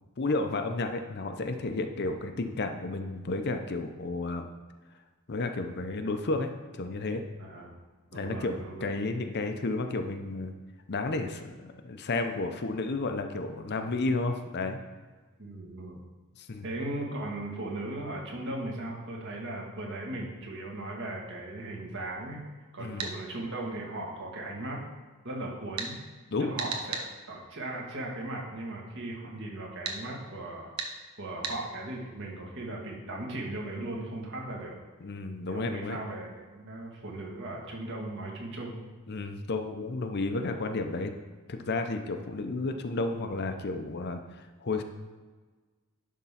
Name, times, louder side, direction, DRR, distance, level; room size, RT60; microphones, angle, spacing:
voice 1, 0.2-4.5 5.3-7.2 8.1-10.5 10.9-14.8 16.4-16.6 22.8-23.1 26.3-26.5 35.0-36.0 39.1-41.1 41.5-44.2 44.6-44.8, left 3 dB, 50° left, 6 dB, 0.6 m, -32 dB
voice 2, 7.4-7.7 8.1-8.8 15.4-16.0 16.6-22.4 22.7-24.8 25.2-26.0 26.4-30.7 31.2-34.7 35.5-38.8, right 1 dB, 55° right, -2 dB, 1.8 m, -37 dB
sound 1, 23.0-23.1 25.8-25.9 26.6-27.1 29.8-30.0 30.8-30.9 31.4-31.6, right 5 dB, 80° right, 1.1 m, -33 dB
11.0 x 3.7 x 5.7 m, 1.4 s
head